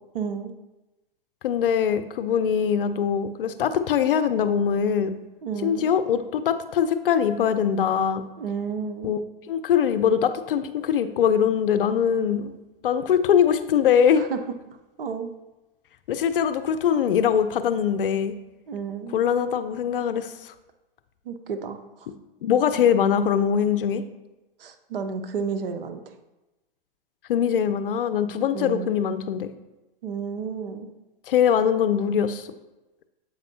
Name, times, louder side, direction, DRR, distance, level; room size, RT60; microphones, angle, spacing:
voice 1, 0.1-0.5 5.4-5.9 8.4-9.1 14.1-14.4 15.0-15.3 18.7-19.2 21.3-22.1 24.6-26.0 28.5-29.0 30.0-30.9, right 6 dB, 70° right, 7 dB, 0.7 m, -31 dB
voice 2, 1.4-5.1 5.6-8.2 9.0-9.2 9.5-12.5 12.8-14.3 16.1-18.3 19.1-20.5 22.4-24.0 27.3-29.5 31.3-32.5, left 8 dB, 65° left, 10 dB, 0.5 m, -22 dB
7.9 x 5.2 x 2.7 m, 1.1 s
hypercardioid pair, 115°, 29 cm